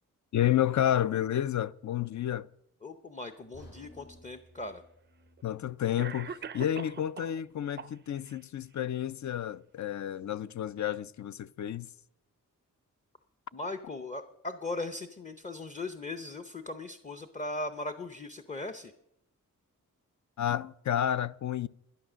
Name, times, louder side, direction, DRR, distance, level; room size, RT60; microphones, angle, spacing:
voice 1, 0.3-2.5 5.4-11.9 20.4-21.7, left 11 dB, 60° left, 0.5 m, -30 dB
voice 2, 2.8-4.8 13.5-18.9, left 2 dB, 20° left, 0.7 m, -38 dB
sound 1, 3.5-7.6 7.9-8.1 8.7-8.8, equal, 80° left, 6.5 m, -57 dB
Cough, 4.3-4.4 5.4-5.5 6.0-7.4 7.8-8.4, right 6 dB, 35° right, 0.4 m, -42 dB
11.5 x 11.5 x 6.2 m
wide cardioid pair, 95°, 33 cm